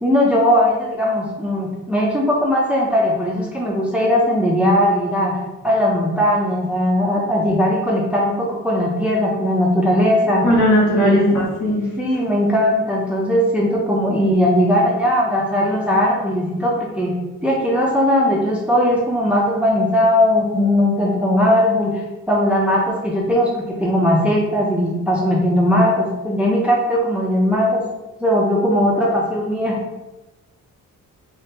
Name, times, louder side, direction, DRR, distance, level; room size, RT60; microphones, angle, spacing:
voice 1, 0.0-10.5 11.0-11.4 12.0-17.1 17.4-27.8 28.2-29.7, equal, 5° right, -3 dB, 0.5 m, -18 dB
voice 2, 10.4-11.9, left 1 dB, 60° left, -5 dB, 1.4 m, -17 dB
4.6 x 2.0 x 2.8 m, 1.0 s
cardioid pair, 110°, 34 cm